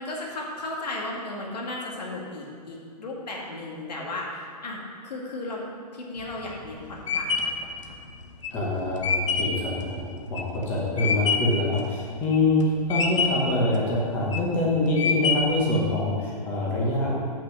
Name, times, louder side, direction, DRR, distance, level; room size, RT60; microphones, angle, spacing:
voice 1, 0.0-5.6 5.9-7.5, left 2 dB, 75° left, -2 dB, 2.2 m, -35 dB
sound 1, 6.2-11.6 12.1-12.6 12.9-13.6 14.1-14.5 15.0-15.7, left 5 dB, 45° left, 0.8 m, -26 dB
voice 2, 8.5-12.6 12.9-17.2, left 2 dB, 10° left, -5 dB, 1.0 m, -25 dB
8.3 x 6.1 x 5.9 m, 2.2 s
hypercardioid pair, 180°, 21 cm